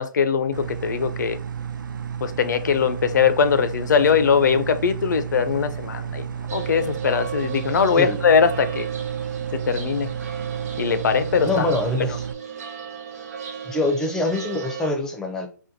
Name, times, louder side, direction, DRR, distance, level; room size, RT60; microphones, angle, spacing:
voice 1, 0.0-1.4 2.2-6.3 6.5-8.9 9.5-10.1 10.8-11.7 12.0-12.1, left 6 dB, 65° left, 0.5 m, -21 dB
sound 1, 0.5-12.3, right 8 dB, 75° right, 0.5 m, -32 dB
sound 2, 6.5-14.9, right 8 dB, 50° right, 1.2 m, -34 dB
voice 2, 11.4-12.2 13.7-15.5, left 2 dB, 5° left, 0.5 m, -24 dB
4.2 x 2.2 x 2.6 m
hypercardioid pair, 150°, 11 cm